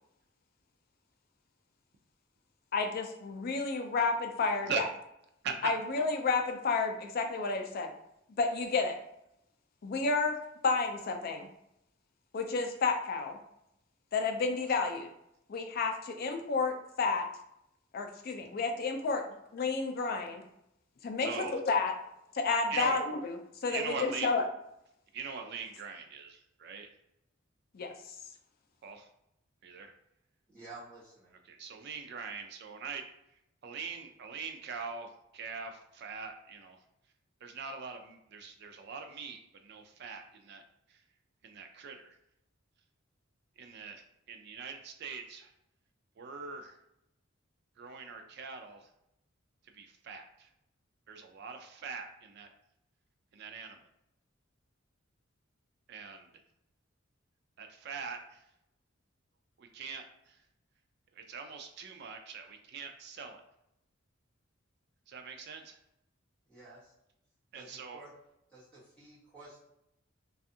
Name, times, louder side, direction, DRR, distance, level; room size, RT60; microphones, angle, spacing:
voice 1, 2.7-4.9 5.6-7.9 8.4-9.0 9.8-10.4 10.6-11.5 12.3-13.4 14.1-15.1 15.5-17.2 17.9-19.2 19.5-20.4 21.0-21.9 22.3-23.4 23.6-24.4 27.7-27.9, left 4 dB, 50° left, 4 dB, 0.4 m, -31 dB
voice 2, 21.2-21.6 22.7-23.0 23.7-24.3 25.1-26.9 28.8-29.1 29.6-29.9 31.5-33.0 33.6-36.8 37.4-40.6 40.9-41.0 41.4-42.2 43.6-45.5 46.2-46.8 47.8-48.9 49.7-50.5 51.1-52.5 53.3-53.8 55.9-56.3 57.6-58.4 59.6-60.4 61.1-63.4 65.1-65.8 67.5-68.1, right 5 dB, 55° right, 5 dB, 0.4 m, -42 dB
voice 3, 30.5-31.3 66.5-66.9 67.5-68.1 68.5-69.6, right 2 dB, 5° left, -9 dB, 1.3 m, -51 dB
2.5 x 2.3 x 2.6 m, 0.81 s
head